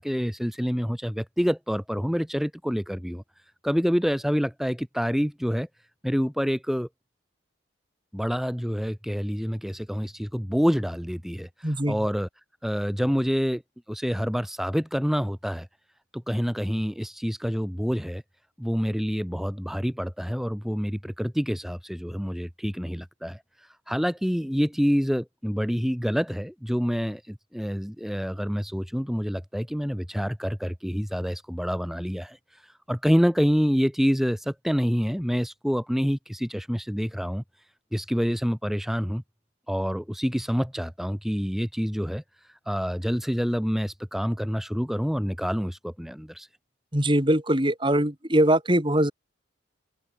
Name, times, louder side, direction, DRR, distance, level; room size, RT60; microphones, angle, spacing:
voice 1, 0.0-6.9 8.1-12.3 12.6-13.6 13.9-15.7 16.1-18.2 18.6-39.2 39.7-46.5, equal, ahead, 3.7 m, -27 dB
voice 2, 11.6-11.9 46.9-49.1, right 1 dB, 25° right, 4.0 m, -22 dB
open air
head